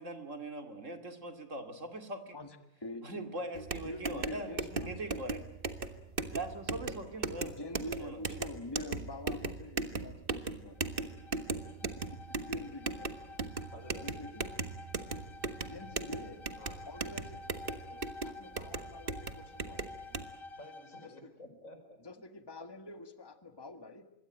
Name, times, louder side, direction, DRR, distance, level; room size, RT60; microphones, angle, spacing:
voice 1, 0.0-2.4 3.0-5.4 6.3-8.4, right 2 dB, 65° right, 7 dB, 2.7 m, -41 dB
voice 2, 2.3-3.3 3.8-5.1 7.6-11.2 11.6-11.8 12.3-13.1 14.0-14.5 15.7-16.5 16.9-20.2 21.0-21.3 22.0-24.1, left 2 dB, 20° left, 8 dB, 1.6 m, -46 dB
sound 1, 3.6-20.3, right 3 dB, 45° right, 1.7 m, -38 dB
Bowed string instrument, 10.7-21.2, left 3 dB, 45° left, 1.3 m, -51 dB
voice 3, 13.7-14.2 16.6-16.8 20.5-22.0, left 1 dB, 75° left, 7 dB, 5.0 m, -52 dB
26.0 x 21.5 x 9.0 m, 0.85 s
omnidirectional pair, 1.4 m